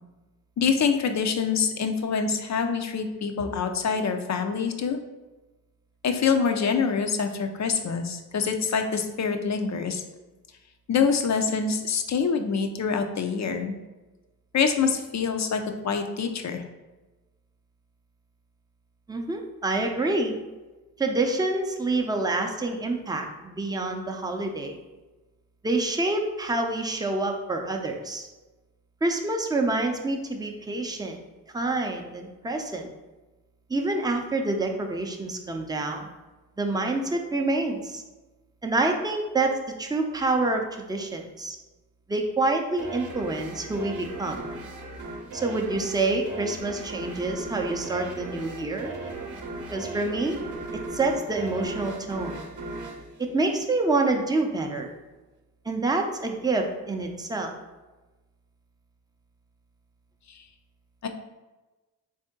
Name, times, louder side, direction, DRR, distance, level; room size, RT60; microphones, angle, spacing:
voice 1, 0.6-5.0 6.0-10.0 10.9-13.7 14.5-16.6 60.3-60.4 61.0-61.1, left 6 dB, 45° left, 6 dB, 0.6 m, -25 dB
voice 2, 19.1-20.4 21.0-24.8 25.6-28.3 29.0-31.2 31.5-32.9 33.7-36.1 36.6-38.0 38.6-41.6 42.1-44.4 45.3-48.9 49.7-50.4 50.9-52.4 53.2-54.9 55.6-57.5, right 2 dB, 10° right, 3 dB, 0.6 m, -27 dB
sound 1, 42.8-54.0, right 2 dB, 50° right, 0.8 m, -37 dB
3.6 x 2.7 x 3.6 m, 1.1 s
supercardioid pair, 50°, 39 cm